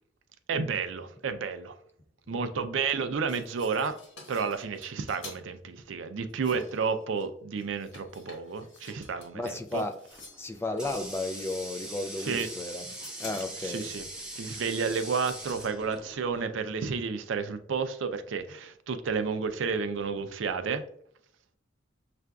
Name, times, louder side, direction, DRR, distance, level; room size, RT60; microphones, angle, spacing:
voice 1, 0.5-1.8 2.3-4.0 4.3-9.8 12.2-12.5 13.6-14.1 14.4-20.8, right 5 dB, 80° right, 0.4 m, -31 dB
sound 1, 3.1-5.4 6.3-7.3 7.6-10.5 10.9-11.2 11.6-12.5 12.8-15.6, left 3 dB, 70° left, 1.2 m, -50 dB
voice 2, 9.3-10.0 10.4-12.9 13.2-13.9, left 2 dB, 15° left, 0.3 m, -34 dB
Water tap faucet, 10.1-16.6, right 1 dB, 5° right, 0.8 m, -42 dB
6.5 x 2.5 x 2.3 m
head